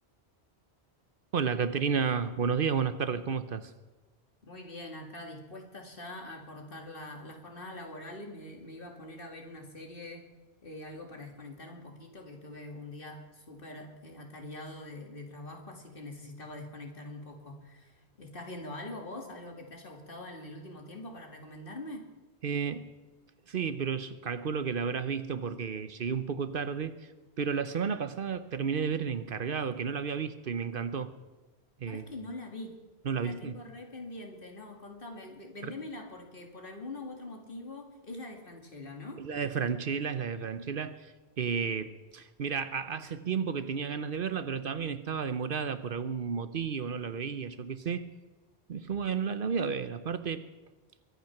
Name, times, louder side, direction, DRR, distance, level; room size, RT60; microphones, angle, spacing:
voice 1, 1.3-3.7 22.4-22.9 23.5-26.9 27.4-31.1 31.8-32.1 33.0-33.6 35.6-35.7 39.2-48.0 48.7-50.4, right 6 dB, 60° right, 12 dB, 0.9 m, -32 dB
voice 2, 4.4-10.2 10.6-22.0 31.9-32.8 33.2-39.2, left 2 dB, 55° left, 2 dB, 2.4 m, -44 dB
23.0 x 9.3 x 5.9 m, 1.2 s
omnidirectional pair, 1.1 m